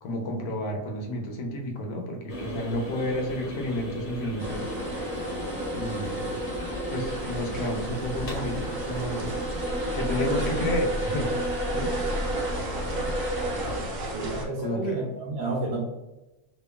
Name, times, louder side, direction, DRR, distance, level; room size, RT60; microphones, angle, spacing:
voice 1, 0.0-4.7 5.7-6.3 6.9-9.3 9.9-11.3 11.7-12.0 14.6-15.0, left 1 dB, 75° left, 1 dB, 1.0 m, -31 dB
sound 1, 2.3-11.9, equal, 55° left, 0.8 m, -38 dB
sound 2, 4.4-13.8, right 1 dB, 15° right, 0.4 m, -32 dB
sound 3, 7.0-14.5, equal, 65° right, 0.9 m, -34 dB
voice 2, 14.1-15.8, right 2 dB, 80° right, -3 dB, 1.1 m, -30 dB
2.8 x 2.2 x 2.2 m, 1.0 s
omnidirectional pair, 1.7 m